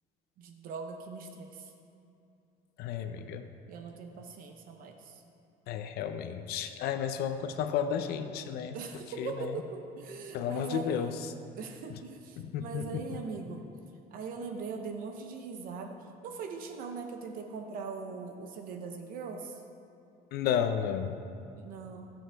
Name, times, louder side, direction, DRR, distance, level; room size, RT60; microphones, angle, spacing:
voice 1, 0.4-1.7 3.7-5.2 8.7-11.2 11.6-13.6 14.1-19.6 21.6-22.1, right 5 dB, 60° right, 4 dB, 0.8 m, -41 dB
voice 2, 2.8-3.5 5.7-8.8 9.2-9.6 10.3-11.3 11.9-12.0 12.4-13.0 20.3-21.2, left 8 dB, 75° left, 8 dB, 0.6 m, -32 dB
20.0 x 7.1 x 3.5 m, 2.7 s
cardioid pair, 175°, 16 cm